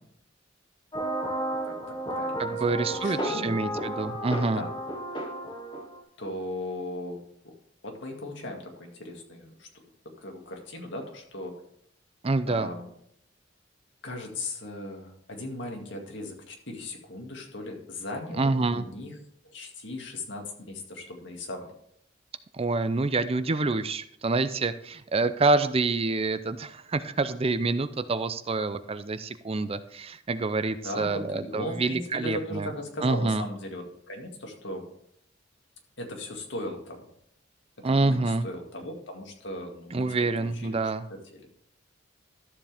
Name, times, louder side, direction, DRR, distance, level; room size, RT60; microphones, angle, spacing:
sound 1, 0.9-6.0, right 1 dB, 25° left, 2.2 m, -32 dB
voice 1, 1.6-3.6 4.5-4.7 6.2-7.6 7.8-9.7 10.0-11.5 12.5-12.9 14.0-19.2 19.4-21.7 30.8-34.9 36.0-37.1 37.9-40.9 41.3-41.5, left 1 dB, 65° left, 2 dB, 2.2 m, -38 dB
voice 2, 2.4-4.6 12.2-12.7 18.4-18.9 22.5-32.7 33.0-33.4 37.8-38.5 39.9-41.0, right 3 dB, 30° right, 12 dB, 0.5 m, -27 dB
13.0 x 7.4 x 3.5 m, 0.69 s
head